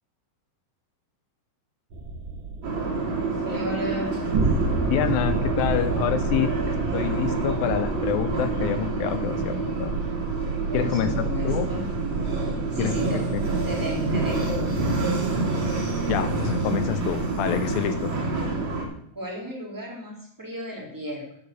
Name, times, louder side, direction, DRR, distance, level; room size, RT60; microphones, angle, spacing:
sound 1, 1.9-18.4, right 3 dB, 60° right, 1.3 m, -32 dB
sound 2, 2.6-18.8, right 3 dB, 35° right, 3.1 m, -28 dB
voice 1, 3.4-4.2 10.7-11.9 12.7-13.3 13.7-14.8 19.1-21.4, equal, 5° right, -3 dB, 2.5 m, -34 dB
voice 2, 4.9-9.9 10.7-11.7 12.8-12.9 16.1-18.1, left 10 dB, 80° left, 11 dB, 2.2 m, -27 dB
8.8 x 7.8 x 6.7 m, 0.67 s
omnidirectional pair, 4.5 m